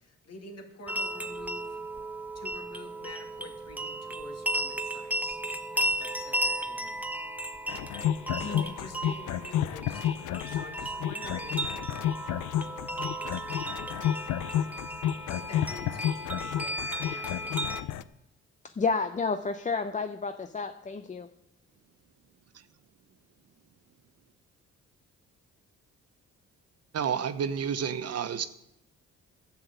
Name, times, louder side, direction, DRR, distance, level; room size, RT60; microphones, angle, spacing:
voice 1, 0.0-1.8 2.3-5.4 5.7-7.1 8.3-11.7 15.3-17.6, left 2 dB, 55° left, 3 dB, 2.4 m, -48 dB
sound 1, 0.9-17.8, right 1 dB, 5° right, 0.9 m, -35 dB
sound 2, 7.7-18.0, left 11 dB, 90° left, 0.5 m, -31 dB
voice 2, 18.6-21.3, left 4 dB, 25° left, 9 dB, 0.6 m, -31 dB
voice 3, 26.9-28.5, right 7 dB, 55° right, 12 dB, 0.8 m, -30 dB
11.0 x 7.1 x 8.1 m, 0.83 s
cardioid pair, 85°, 30 cm